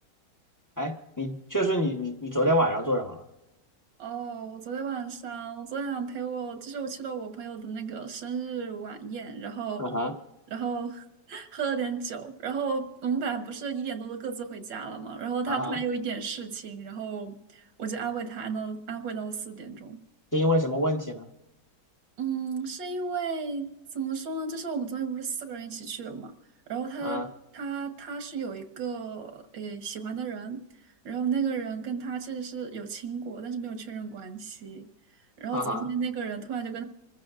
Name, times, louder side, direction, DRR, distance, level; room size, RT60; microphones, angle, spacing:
voice 1, 0.8-3.2 9.8-10.1 15.5-15.8 20.3-21.2 27.0-27.3 35.5-35.9, equal, 15° left, 0.8 m, -27 dB
voice 2, 4.0-9.9 10.5-20.0 22.2-26.3 26.7-27.2 27.5-30.6 31.0-34.9 35.4-36.8, right 5 dB, 80° right, 1.9 m, -33 dB
26.0 x 14.5 x 2.5 m
omnidirectional pair, 1.9 m